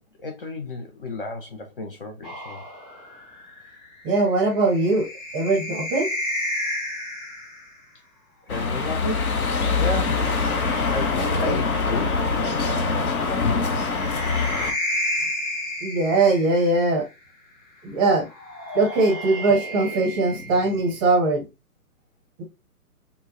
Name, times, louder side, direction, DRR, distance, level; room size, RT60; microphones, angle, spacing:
voice 1, 0.2-2.6 8.5-9.4 9.8-10.3 10.9-12.2 12.5-12.8, left 2 dB, 35° left, 0.6 m, -32 dB
sound 1, 2.2-7.8 9.1-12.1 13.5-16.9 18.2-21.1, equal, 20° left, 1.4 m, -33 dB
voice 2, 4.0-5.1 5.3-6.1 15.8-17.1 17.8-18.3 18.7-21.4 22.4-22.5, right 3 dB, 15° right, 0.7 m, -21 dB
sound 2, 8.5-14.7, left 4 dB, 65° left, 0.9 m, -24 dB
4.4 x 2.1 x 2.5 m
figure-of-eight pair, 130°, 46 cm